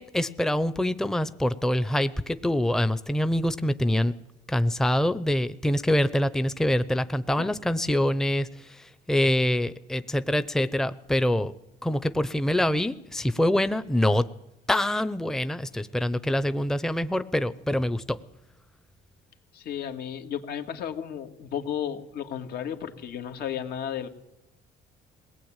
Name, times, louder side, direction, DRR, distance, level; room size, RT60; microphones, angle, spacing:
voice 1, 0.0-4.1 4.5-11.5 11.8-14.2 14.7-18.2, left 1 dB, 5° left, 13 dB, 0.8 m, -25 dB
voice 2, 19.5-24.1, left 9 dB, 70° left, 6 dB, 2.3 m, -33 dB
21.5 x 18.5 x 9.0 m, 0.89 s
cardioid pair, 110°, 17 cm